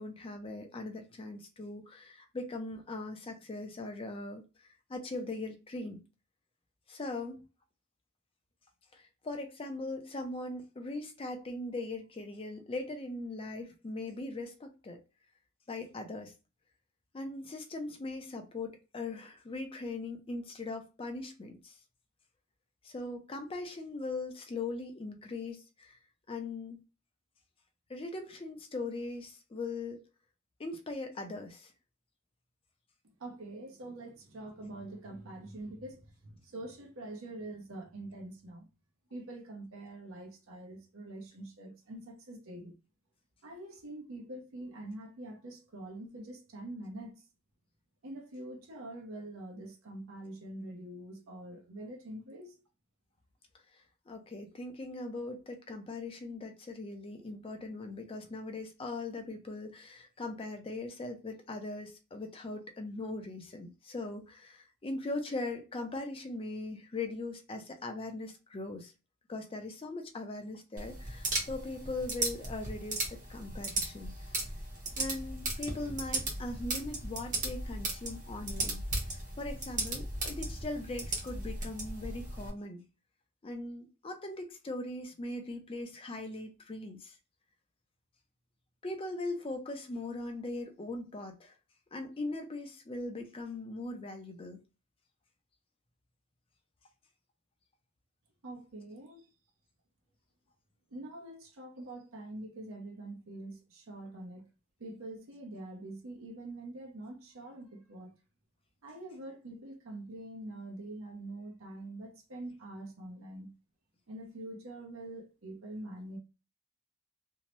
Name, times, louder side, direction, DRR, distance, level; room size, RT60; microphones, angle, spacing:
voice 1, 0.0-6.0 6.9-7.4 8.9-15.0 15.7-16.3 17.1-21.8 22.8-26.0 26.3-26.8 27.9-30.0 30.6-31.7 53.7-68.9 69.3-74.1 75.0-82.8 83.4-87.2 88.8-91.6 91.9-94.6, left 2 dB, 25° left, 0.4 m, -40 dB
voice 2, 33.0-38.7 39.1-42.7 43.4-47.3 48.0-52.6 98.4-99.3 100.9-104.5 104.8-108.1 108.8-113.5 114.1-116.2, right 1 dB, 75° right, 0.7 m, -45 dB
sound 1, 70.8-82.5, right 2 dB, 40° right, 0.8 m, -36 dB
2.6 x 2.0 x 3.0 m
head